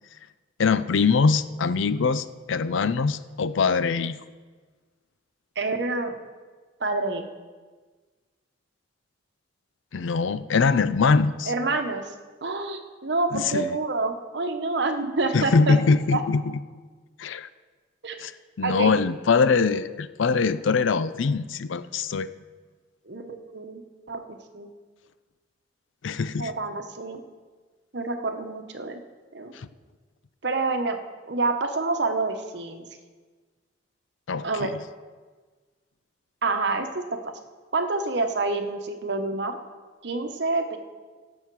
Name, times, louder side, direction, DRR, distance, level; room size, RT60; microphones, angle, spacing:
voice 1, 0.6-4.2 9.9-11.5 13.3-13.7 15.3-16.4 17.2-17.5 18.2-18.3 18.6-22.3 26.0-26.5 29.5-29.7 34.3-34.7, left 4 dB, 75° left, 14 dB, 0.5 m, -23 dB
voice 2, 5.6-6.2 6.8-7.2 11.5-12.1 12.4-15.8 16.1-16.2 18.0-18.2 18.6-18.9 23.1-24.2 24.5-24.7 26.4-27.2 27.9-29.0 29.3-29.5 30.4-31.0 31.3-32.8 34.4-34.7 36.4-37.4 37.7-39.6 40.0-40.8, right 3 dB, 60° right, 6 dB, 1.0 m, -27 dB
17.0 x 7.1 x 4.7 m, 1.4 s
head